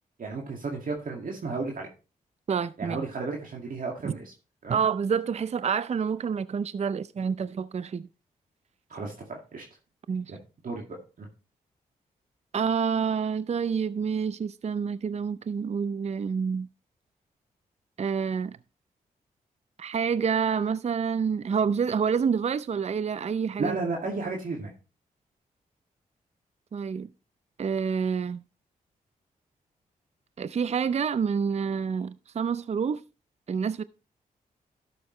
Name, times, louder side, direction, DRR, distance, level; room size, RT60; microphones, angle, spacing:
voice 1, 0.2-1.9 2.8-4.3 4.6-4.8 8.9-9.6 10.3-10.4 10.6-10.8 11.2-11.3 23.6-24.7, right 3 dB, 60° right, 2.1 m, -33 dB
voice 2, 2.5-3.0 4.0-4.1 4.7-8.1 10.1-10.3 12.5-16.7 18.0-18.6 19.8-23.8 26.7-27.1 27.6-28.4 30.4-33.0 33.5-33.8, right 6 dB, 45° right, 0.5 m, -28 dB
12.0 x 6.9 x 3.2 m
supercardioid pair, 50°, 16 cm